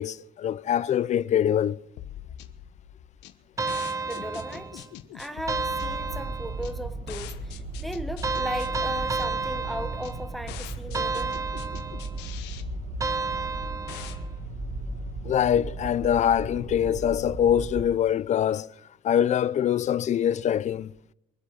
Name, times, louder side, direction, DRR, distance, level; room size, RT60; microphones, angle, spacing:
voice 1, 0.0-1.8 15.2-18.7 19.0-20.9, left 9 dB, 45° left, 0.5 m, -24 dB
sound 1, 2.0-15.6, left 10 dB, 90° left, 1.2 m, -42 dB
sound 2, 3.6-4.9 5.5-6.8 8.2-10.4 10.9-12.2 13.0-14.3, right 4 dB, 20° right, 0.5 m, -31 dB
voice 2, 4.0-4.9 5.1-11.4, equal, ahead, 1.0 m, -36 dB
sound 3, 5.8-17.9, right 3 dB, 55° right, 2.0 m, -37 dB
23.5 x 8.0 x 6.4 m
cardioid pair, 110°, 17 cm